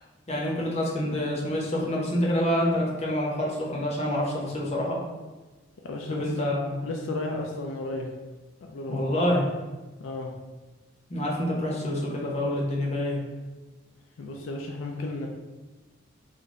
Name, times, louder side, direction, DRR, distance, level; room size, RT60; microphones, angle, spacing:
voice 1, 0.3-5.0 6.1-6.8 8.9-9.5 11.1-13.2, left 1 dB, 35° left, -3 dB, 0.7 m, -27 dB
voice 2, 5.8-6.4 6.8-8.1 8.7-9.3 10.0-10.3 14.2-15.3, left 2 dB, 75° left, 1 dB, 0.4 m, -33 dB
3.9 x 2.2 x 3.6 m, 1.2 s
head